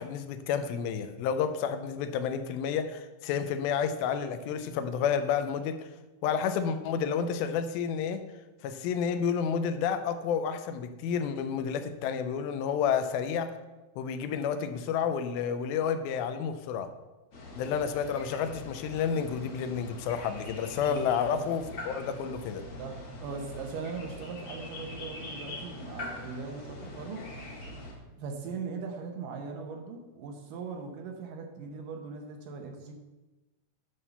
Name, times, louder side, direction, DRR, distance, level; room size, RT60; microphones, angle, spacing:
voice 1, 0.0-5.9 6.2-8.2 8.6-13.6 14.0-16.9 17.6-22.6, left 7 dB, 85° left, 9 dB, 2.4 m, -30 dB
sound 1, 17.3-27.9, left 2 dB, 50° left, 1.8 m, -43 dB
voice 2, 22.8-27.2 28.2-32.9, right 5 dB, 70° right, 3 dB, 2.3 m, -39 dB
11.0 x 3.7 x 6.7 m, 1.1 s
omnidirectional pair, 4.3 m